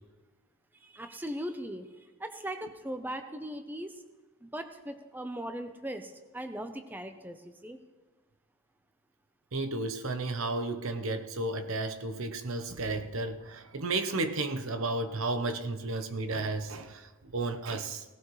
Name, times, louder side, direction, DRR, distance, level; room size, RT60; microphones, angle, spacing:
voice 1, 0.7-4.0 4.4-7.8, right 1 dB, 10° right, 7 dB, 0.7 m, -39 dB
voice 2, 9.5-18.0, right 2 dB, 70° right, 8 dB, 0.9 m, -33 dB
17.5 x 15.0 x 3.2 m, 1.2 s
head